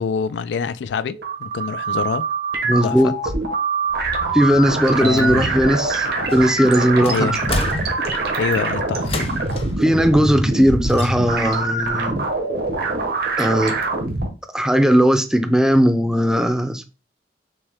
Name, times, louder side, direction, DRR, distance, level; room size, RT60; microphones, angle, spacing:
voice 1, 0.0-2.3 2.7-3.1 5.0-5.5 7.0-7.4 8.4-9.4, left 6 dB, 90° left, 0.3 m, -25 dB
sound 1, 1.0-14.3, right 3 dB, 65° right, 1.0 m, -24 dB
voice 2, 2.7-3.1 4.3-6.1 6.3-7.3 9.8-12.3 13.4-13.7 14.5-16.8, equal, 5° right, 0.5 m, -17 dB
sound 2, 3.9-9.2, equal, 65° left, 1.3 m, -36 dB
sound 3, 6.3-6.7 7.0-8.4 9.0-9.8 10.9-11.5 11.9-12.0, left 2 dB, 35° left, 0.7 m, -29 dB
6.0 x 2.2 x 3.5 m
head